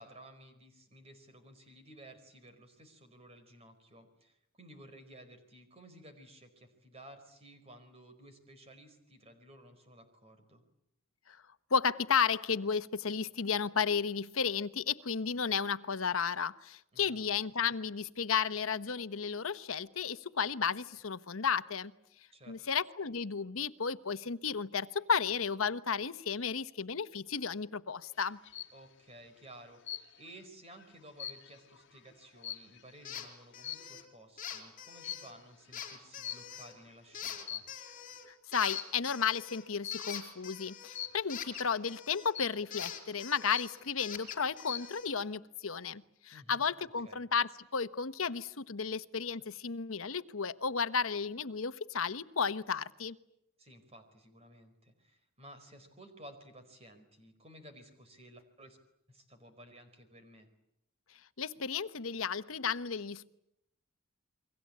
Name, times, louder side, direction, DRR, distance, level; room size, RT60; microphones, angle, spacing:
voice 1, 0.0-10.6 16.9-17.2 22.3-22.6 28.7-37.6 46.3-46.6 47.0-47.2 53.6-58.8 59.1-60.5, right 1 dB, 30° right, 4.6 m, -55 dB
voice 2, 11.7-21.9 22.5-28.4 38.3-53.2 61.4-63.3, left 6 dB, 75° left, 1.0 m, -33 dB
sound 1, 28.2-28.8 29.8-30.4 30.8-33.0 33.6-34.0 35.0-35.4 36.2-36.8 37.3-38.0 38.7-39.1 39.8-40.2 40.9-41.4 42.3-42.8 43.2-43.3 43.5-44.1 44.5-45.0, left 10 dB, 55° left, 2.3 m, -42 dB
sound 2, 33.0-33.3 33.5-34.0 34.4-35.3 35.7-36.7 37.1-38.3 38.5-42.3 42.7-45.1, left 9 dB, 40° left, 4.5 m, -44 dB
29.5 x 23.0 x 8.6 m
head